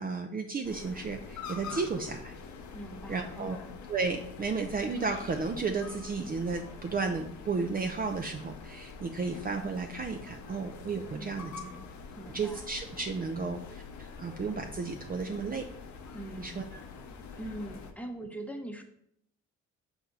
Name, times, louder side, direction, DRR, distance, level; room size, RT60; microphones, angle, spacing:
voice 1, 0.0-2.3 3.1-3.6 3.9-11.5 12.3-15.7 16.4-16.6, right 4 dB, 30° right, 4 dB, 0.5 m, -33 dB
sound 1, 0.6-17.9, left 5 dB, 70° left, 0.8 m, -45 dB
voice 2, 2.7-3.8 11.1-11.9 12.2-12.6 16.1-16.7 17.4-18.8, right 1 dB, 5° left, 4 dB, 0.8 m, -42 dB
5.9 x 4.2 x 3.9 m, 0.72 s
cardioid pair, 90°, 30 cm